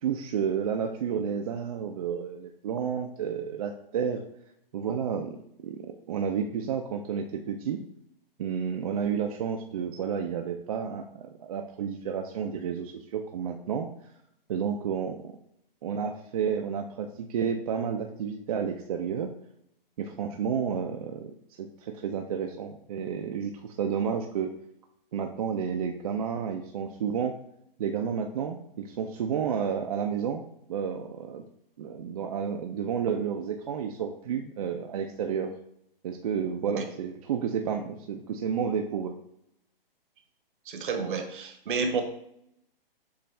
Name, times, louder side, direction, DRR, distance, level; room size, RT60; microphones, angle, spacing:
voice 1, 0.0-4.2 4.7-5.4 5.6-7.8 8.4-13.9 14.5-15.3 15.8-19.3 20.0-21.3 21.8-24.5 25.1-27.3 27.8-30.4 30.7-31.4 31.8-35.5 36.0-39.1, right 7 dB, 40° right, 3 dB, 0.4 m, -31 dB
voice 2, 40.7-42.0, right 5 dB, 60° right, 6 dB, 0.9 m, -30 dB
6.9 x 2.4 x 3.2 m, 0.75 s
hypercardioid pair, 140°, 29 cm